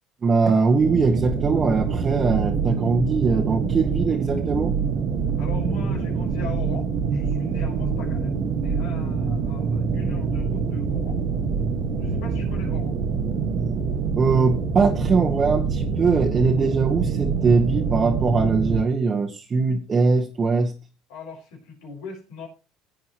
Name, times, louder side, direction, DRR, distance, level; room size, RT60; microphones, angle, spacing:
voice 1, 0.2-4.7 14.1-20.7, right 4 dB, 30° right, 0 dB, 1.6 m, -21 dB
sound 1, 0.8-18.8, right 5 dB, 55° right, 1.6 m, -25 dB
voice 2, 5.4-8.3 8.6-11.2 12.0-13.0 21.1-22.5, left 4 dB, 80° left, 0 dB, 5.1 m, -39 dB
15.5 x 8.4 x 3.1 m, 0.30 s
supercardioid pair, 95°, 0 cm